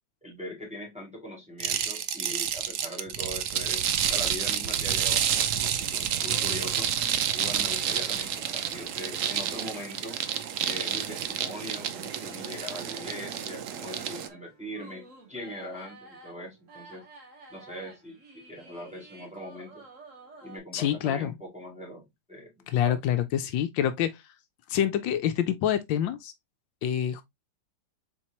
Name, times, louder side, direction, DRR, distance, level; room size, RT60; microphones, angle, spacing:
voice 1, 0.2-6.9 7.3-10.2 10.6-17.0 17.5-19.8 20.4-23.0, equal, 5° right, 2.0 m, -41 dB
sound 1, 1.6-14.3, right 9 dB, 75° right, 0.7 m, -29 dB
sound 2, 6.1-20.6, right 3 dB, 45° right, 1.6 m, -51 dB
voice 2, 20.7-21.3 22.7-24.2 24.7-26.3 26.8-27.2, left 10 dB, 80° left, 1.3 m, -26 dB
4.4 x 4.3 x 2.8 m
omnidirectional pair, 2.1 m